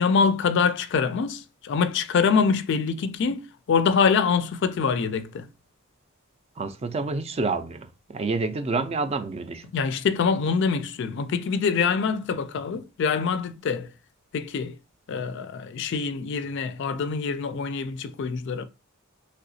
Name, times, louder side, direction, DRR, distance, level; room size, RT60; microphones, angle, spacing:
voice 1, 0.0-5.5 9.7-13.9 14.3-14.8 15.1-18.7, left 5 dB, 55° left, 0.3 m, -25 dB
voice 2, 6.6-9.7, right 3 dB, 30° right, 0.3 m, -28 dB
3.3 x 2.8 x 2.6 m
head